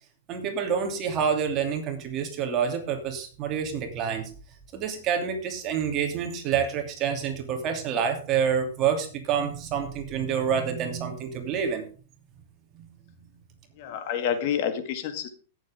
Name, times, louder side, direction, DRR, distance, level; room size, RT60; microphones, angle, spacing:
voice 1, 0.3-4.3 4.7-11.8 12.7-12.9, right 7 dB, 30° right, 5 dB, 2.7 m, -27 dB
voice 2, 13.8-15.3, left 8 dB, 50° left, 9 dB, 2.0 m, -28 dB
17.0 x 7.6 x 3.6 m, 0.37 s
supercardioid pair, 155°, 0 cm